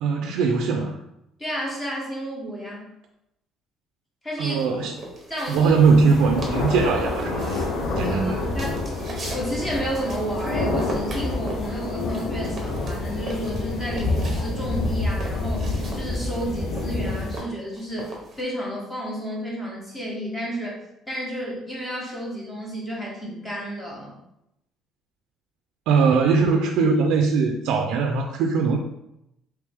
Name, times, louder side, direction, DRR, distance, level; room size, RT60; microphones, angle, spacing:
voice 1, 0.0-1.0 4.4-4.9 5.5-7.6 8.0-8.4 25.9-28.8, right 5 dB, 75° right, 3 dB, 0.3 m, -20 dB
voice 2, 1.4-2.9 4.2-4.6 5.3-5.8 8.0-8.8 9.3-20.8 21.1-24.1, equal, 15° left, -3 dB, 1.0 m, -31 dB
sound 1, 4.6-6.1 6.4-6.9 7.1-10.5 10.8-14.5 14.8-18.4, right 2 dB, 25° right, 0.8 m, -38 dB
sound 2, 5.5-17.4, left 2 dB, 60° left, 0.9 m, -28 dB
3.4 x 3.0 x 3.4 m, 0.84 s
cardioid pair, 170°, 0 cm